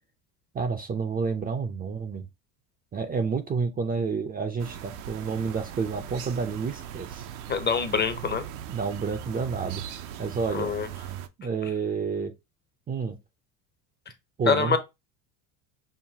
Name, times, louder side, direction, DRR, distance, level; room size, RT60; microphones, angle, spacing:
voice 1, 0.5-2.3 2.9-7.2 8.7-9.8 10.2-10.7 11.4-12.3 12.9-13.2 14.4-14.8, right 5 dB, 20° right, 0.4 m, -29 dB
sound 1, 4.6-11.3, right 10 dB, 80° right, 0.7 m, -39 dB
voice 2, 7.5-8.4 10.5-10.9 14.5-14.8, left 5 dB, 25° left, 0.6 m, -25 dB
5.8 x 2.1 x 2.7 m
supercardioid pair, 95°, 44 cm